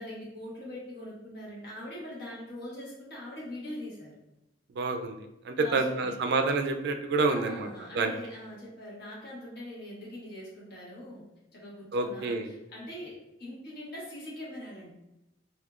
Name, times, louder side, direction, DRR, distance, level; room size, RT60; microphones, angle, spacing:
voice 1, 0.0-4.1 5.6-6.1 7.3-11.2 11.5-14.9, left 1 dB, 60° left, -5 dB, 1.3 m, -42 dB
voice 2, 4.8-8.1 11.9-12.5, right 3 dB, 60° right, 6 dB, 0.3 m, -28 dB
3.5 x 2.6 x 2.4 m, 0.91 s
head